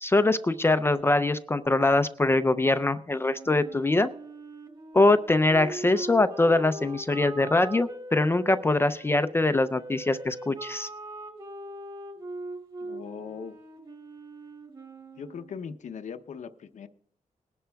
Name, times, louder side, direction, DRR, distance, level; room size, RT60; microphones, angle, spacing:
voice 1, 0.0-4.1 4.9-10.9, left 2 dB, 15° left, 11 dB, 0.4 m, -23 dB
Wind instrument woodwind instrument, 3.2-9.1 9.7-15.6, right 1 dB, 35° right, 5.3 m, -41 dB
voice 2, 12.8-13.6 15.2-16.9, left 6 dB, 60° left, 9 dB, 0.7 m, -39 dB
20.5 x 11.0 x 2.3 m, 0.68 s
wide cardioid pair, 120°, 14 cm